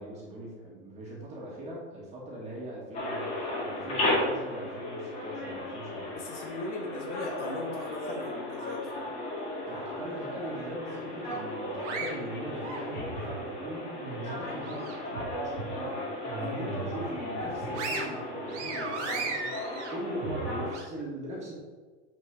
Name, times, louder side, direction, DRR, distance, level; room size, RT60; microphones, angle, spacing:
voice 1, 0.0-6.4 9.7-21.6, right 1 dB, 20° right, -4 dB, 2.2 m, -40 dB
sound 1, 2.9-20.7, left 1 dB, 20° left, 1.9 m, -35 dB
voice 2, 6.1-9.2 16.3-16.7, left 2 dB, 80° left, -1 dB, 2.3 m, -39 dB
sound 2, 11.3-13.3 13.7-15.2 15.6-15.7 16.2-17.0 17.4-20.8, right 4 dB, 80° right, 2.1 m, -37 dB
7.5 x 6.3 x 3.9 m, 1.4 s
supercardioid pair, 170°, 35 cm